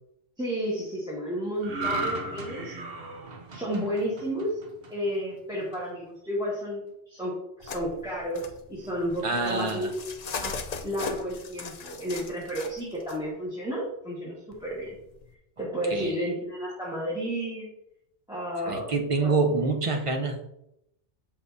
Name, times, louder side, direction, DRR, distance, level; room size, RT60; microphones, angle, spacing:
voice 1, 0.4-2.7 3.5-4.6 4.9-10.0 10.4-15.0 15.6-17.7 18.3-18.9 19.2-19.4, equal, 5° right, -7 dB, 1.4 m, -32 dB
sound 1, 1.6-5.1 5.5-5.8, right 2 dB, 55° right, 1.1 m, -35 dB
sound 2, 7.6-13.2 14.5-15.3, left 5 dB, 50° left, 0.5 m, -39 dB
voice 2, 9.2-9.9 15.9-16.3 18.6-20.4, right 3 dB, 35° right, 2 dB, 0.6 m, -26 dB
7.8 x 5.7 x 2.7 m, 0.82 s
omnidirectional pair, 1.2 m